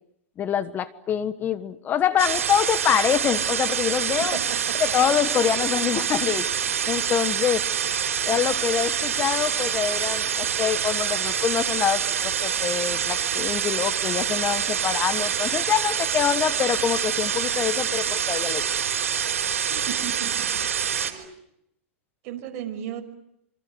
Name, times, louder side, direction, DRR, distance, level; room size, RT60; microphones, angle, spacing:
voice 1, 0.4-4.4 4.8-6.5 6.9-7.7 8.2-18.7, left 9 dB, 25° left, 12 dB, 1.3 m, -25 dB
sound 1, 2.2-21.1, right 8 dB, 85° right, 4.3 m, -26 dB
voice 2, 4.2-4.8 19.7-20.5 21.1-21.3 22.2-23.0, right 10 dB, 45° right, 6 dB, 5.8 m, -35 dB
27.0 x 26.5 x 8.0 m, 0.80 s
hypercardioid pair, 125°, 7 cm